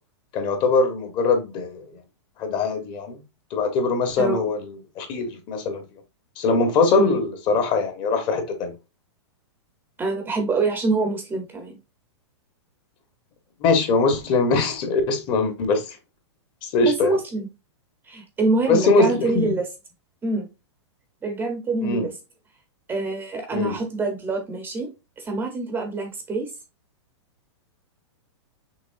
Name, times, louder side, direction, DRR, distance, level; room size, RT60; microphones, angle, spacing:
voice 1, 0.3-1.8 2.4-3.2 3.5-5.8 6.4-8.7 13.6-16.0 16.6-17.2 18.7-19.4 21.8-22.1 23.5-23.8, left 3 dB, 30° left, 1.1 m, -22 dB
voice 2, 4.2-4.5 7.0-7.2 10.0-11.8 16.8-17.5 18.1-19.7 20.2-20.5 21.2-22.1 22.9-24.9 25.2-26.5, right 3 dB, 15° right, 0.7 m, -25 dB
6.1 x 3.2 x 2.5 m
hypercardioid pair, 145°, 15 cm